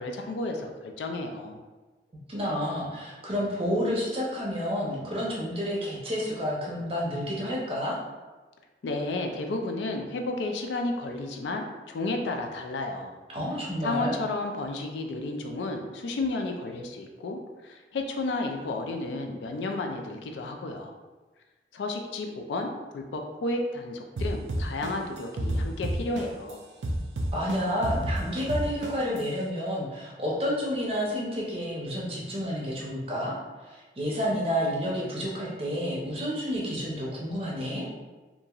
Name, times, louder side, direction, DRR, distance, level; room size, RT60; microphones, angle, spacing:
voice 1, 0.0-1.6 8.8-13.1 13.8-20.9 21.7-26.6, left 2 dB, 80° left, 3 dB, 0.4 m, -32 dB
voice 2, 2.3-8.0 13.3-14.1 27.3-33.3 33.7-37.9, equal, 30° right, -4 dB, 0.6 m, -30 dB
sound 1, 24.2-26.5 26.8-29.2, right 1 dB, 85° right, 0.4 m, -29 dB
2.9 x 2.5 x 2.3 m, 1.2 s
head